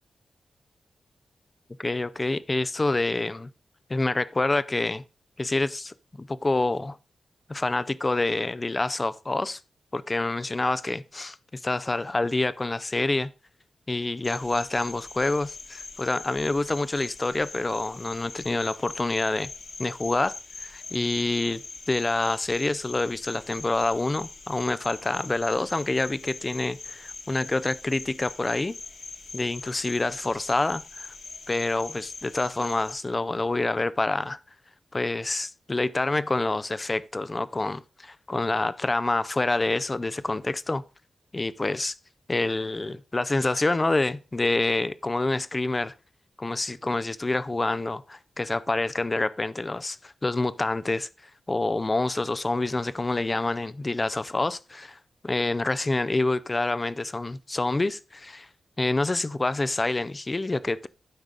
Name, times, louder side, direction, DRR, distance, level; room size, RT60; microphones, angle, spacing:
voice 1, 1.8-3.5 3.9-5.0 5.4-7.0 7.5-9.6 9.9-13.3 13.9-19.5 19.8-20.3 20.6-21.6 21.9-28.8 29.3-31.1 31.5-34.4 34.9-40.8 41.3-41.9 42.3-45.9 46.4-51.1 51.5-55.0 55.2-58.5 58.8-60.9, left 2 dB, 25° left, 0.4 m, -27 dB
Cricket, 14.2-32.9, left 3 dB, 60° left, 1.9 m, -42 dB
12.0 x 5.0 x 3.9 m
wide cardioid pair, 115°, 0 cm